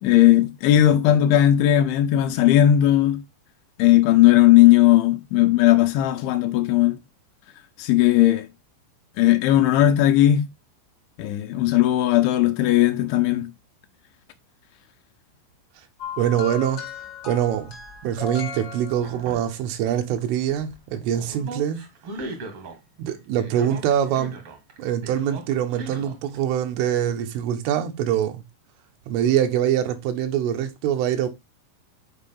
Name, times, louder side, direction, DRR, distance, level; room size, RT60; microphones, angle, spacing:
voice 1, 0.0-3.2 3.8-7.0 7.8-8.5 9.2-10.5 11.2-13.5, left 13 dB, 80° left, 2.9 m, -17 dB
sound 1, 16.0-19.5 20.6-20.8, left 5 dB, 60° left, 0.9 m, -36 dB
voice 2, 16.2-16.9 17.3-17.8 18.0-21.8 23.0-24.4 24.8-28.4 29.1-31.3, right 10 dB, 80° right, 3.7 m, -24 dB
sound 2, 19.0-20.4 20.7-22.8 23.1-24.8 25.0-26.4, right 2 dB, 60° right, 1.5 m, -38 dB
8.9 x 4.9 x 3.6 m
omnidirectional pair, 5.6 m